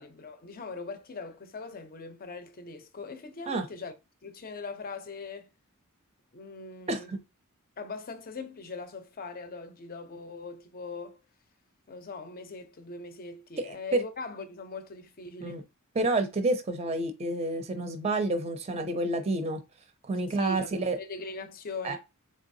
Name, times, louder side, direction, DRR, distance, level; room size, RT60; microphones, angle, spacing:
voice 1, 0.0-3.9 4.2-5.5 6.3-7.1 7.8-11.2 11.9-15.6 20.3-22.0, left 4 dB, 40° left, 0.6 m, -41 dB
voice 2, 13.6-14.0 15.4-15.6 16.0-19.6 20.1-21.0 21.8-22.0, right 2 dB, 30° right, 0.5 m, -29 dB
3.8 x 3.2 x 2.6 m
head